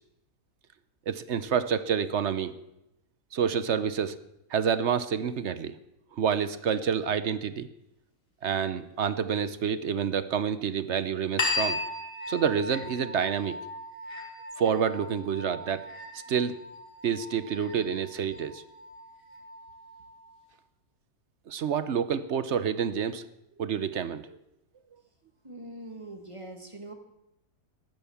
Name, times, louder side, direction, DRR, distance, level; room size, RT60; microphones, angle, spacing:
voice 1, 1.1-2.5 3.3-4.2 4.5-5.8 6.1-7.7 8.4-11.8 12.3-13.6 14.6-15.8 16.1-16.5 17.0-18.6 21.5-23.2 23.6-24.4, right 7 dB, 55° right, 14 dB, 0.9 m, -28 dB
sound 1, 11.4-20.4, left 2 dB, 50° left, 3.0 m, -37 dB
voice 2, 25.4-26.9, right 1 dB, 20° right, 4 dB, 1.8 m, -42 dB
14.5 x 11.0 x 7.1 m, 0.87 s
omnidirectional pair, 1.8 m